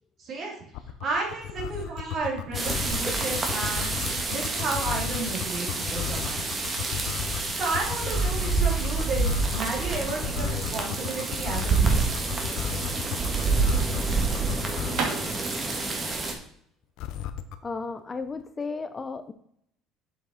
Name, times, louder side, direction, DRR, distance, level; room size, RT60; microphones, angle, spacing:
voice 1, 0.2-0.5 1.0-3.9 4.3-6.5 7.6-12.0, right 3 dB, 50° right, -1 dB, 3.1 m, -32 dB
sound 1, 0.7-15.1 17.0-17.6, left 11 dB, 70° left, 0.7 m, -34 dB
sound 2, 2.5-16.3, right 3 dB, 25° right, 1.7 m, -28 dB
sound 3, 14.9-18.7, right 5 dB, 75° right, 1.8 m, -37 dB
voice 2, 17.6-19.3, left 4 dB, 25° left, 10 dB, 0.6 m, -34 dB
7.5 x 6.0 x 4.2 m, 0.68 s
cardioid pair, 110°, 0 cm